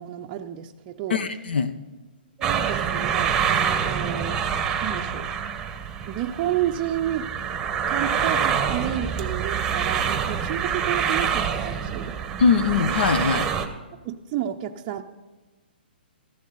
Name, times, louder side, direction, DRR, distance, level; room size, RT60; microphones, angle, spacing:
voice 1, 0.0-1.2 2.4-4.4 4.8-5.3 6.1-7.3 7.9-12.2 14.0-15.0, right 11 dB, 30° right, 1 dB, 0.5 m, -31 dB
voice 2, 1.1-1.7 12.4-13.5, left 5 dB, 75° left, 12 dB, 0.9 m, -21 dB
sound 1, 2.4-13.7, right 7 dB, 10° right, 0.9 m, -26 dB
14.5 x 11.0 x 4.0 m, 1.3 s
hypercardioid pair, 150°, 6 cm